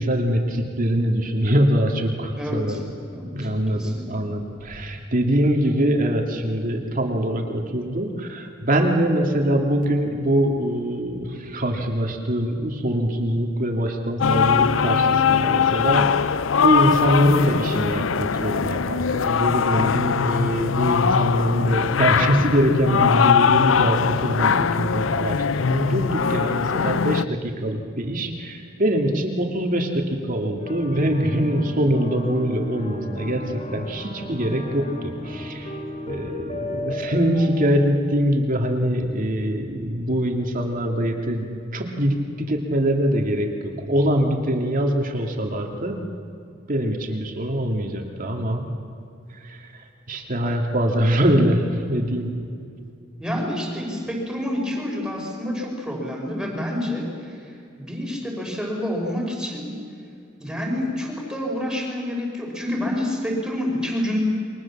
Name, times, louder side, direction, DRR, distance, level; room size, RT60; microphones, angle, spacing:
voice 1, 0.0-2.9 3.3-35.7 36.1-42.2 42.5-46.0 46.7-48.7 49.4-52.3, equal, 45° right, 2 dB, 2.5 m, -23 dB
voice 2, 2.4-2.8 3.1-4.2 53.2-59.8 60.4-64.2, left 1 dB, 5° right, -1 dB, 5.1 m, -28 dB
sound 1, 14.2-27.2, left 6 dB, 90° left, 0.6 m, -21 dB
sound 2, 30.6-37.7, left 1 dB, 35° left, 2.9 m, -34 dB
28.5 x 23.0 x 7.4 m, 2.4 s
head